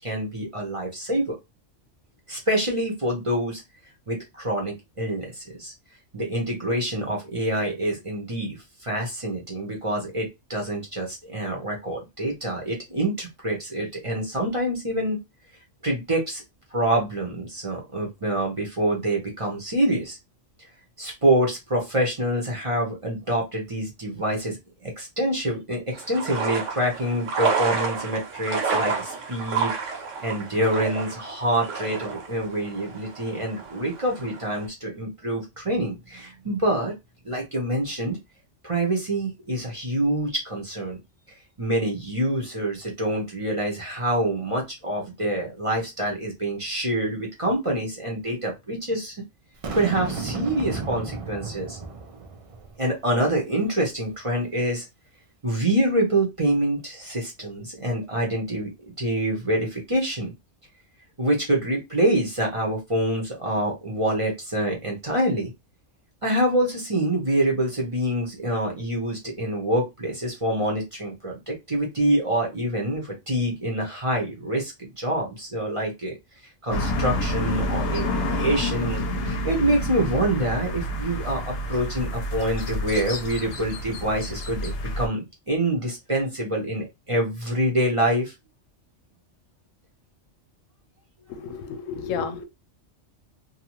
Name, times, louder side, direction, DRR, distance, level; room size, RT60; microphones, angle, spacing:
voice 1, 0.0-1.4 2.3-3.6 4.1-5.7 6.1-15.2 15.8-16.4 16.7-20.2 21.0-29.7 30.2-36.9 37.2-38.2 38.6-41.0 41.6-49.2 49.7-51.8 52.8-54.8 55.4-58.7 59.0-60.3 61.2-65.5 66.2-76.1 76.6-88.3, right 1 dB, 30° right, 0.7 m, -26 dB
sound 1, 25.9-34.7, right 5 dB, 75° right, 1.2 m, -30 dB
Boom, 49.6-52.9, right 4 dB, 55° right, 0.4 m, -33 dB
sound 2, 76.7-85.1, left 1 dB, 60° left, 0.8 m, -28 dB
voice 2, 91.3-92.5, left 6 dB, 90° left, 1.0 m, -31 dB
2.6 x 2.3 x 3.0 m
omnidirectional pair, 1.3 m